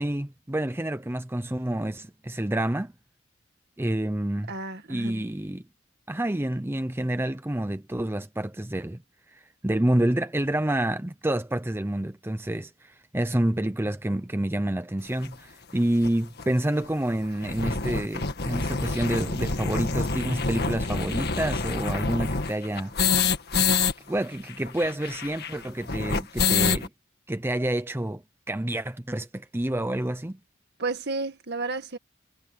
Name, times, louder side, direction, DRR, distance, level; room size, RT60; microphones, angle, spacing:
voice 1, 0.0-2.9 3.8-4.5 4.9-5.6 6.1-9.0 9.3-22.9 24.1-26.9 27.3-30.4, right 1 dB, 10° right, 0.7 m, -28 dB
voice 2, 4.5-5.2 30.8-32.0, right 3 dB, 55° right, 2.0 m, -32 dB
sound 1, 15.2-15.3 16.0-16.1 16.4-16.5 16.8-16.9 17.2-23.9 24.2-24.3 24.5-26.9, left 4 dB, 55° left, 1.8 m, -27 dB
head